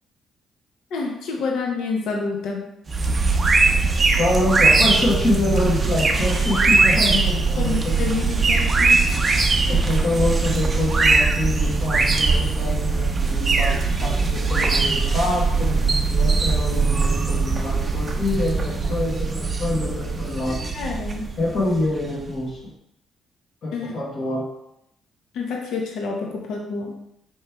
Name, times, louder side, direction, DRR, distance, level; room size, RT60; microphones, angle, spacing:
voice 1, 0.9-2.7 7.6-9.2 20.5-21.3 23.7-24.0 25.3-26.9, left 4 dB, 80° left, 0 dB, 0.7 m, -28 dB
Pajaros Mazunte, 2.9-22.3, right 3 dB, 30° right, 0.5 m, -21 dB
voice 2, 4.2-8.0 9.7-20.6 21.4-22.7 23.6-24.4, left 2 dB, 55° left, -6 dB, 1.2 m, -26 dB
4.3 x 3.1 x 3.4 m, 0.79 s
cardioid pair, 90°, 0 cm